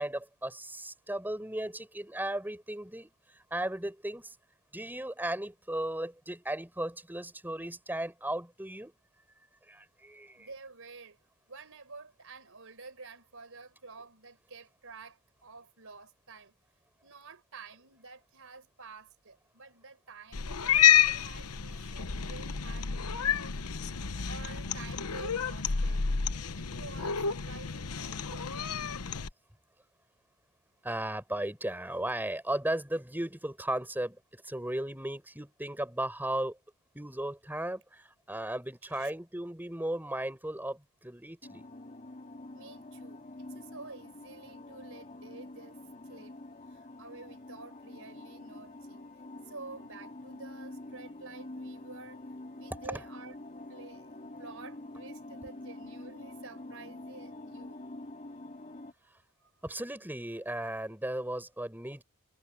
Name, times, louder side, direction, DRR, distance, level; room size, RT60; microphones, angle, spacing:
voice 1, 0.0-3.1 3.5-4.3 4.7-8.9 9.7-10.5 30.8-36.6 36.9-41.6 52.9-53.0 59.6-62.0, right 1 dB, 10° right, 5.0 m, -36 dB
voice 2, 10.3-11.2 11.5-16.5 17.0-23.5 24.2-26.0 26.6-28.8 38.8-39.1 42.5-45.8 46.1-46.4 46.7-49.1 49.5-52.2 52.6-53.4 53.7-57.8 59.4-59.5, right 4 dB, 65° right, 5.0 m, -50 dB
Cat, 20.3-29.3, left 8 dB, 80° left, 1.0 m, -29 dB
sound 1, 41.4-58.9, left 2 dB, 35° left, 2.6 m, -46 dB
head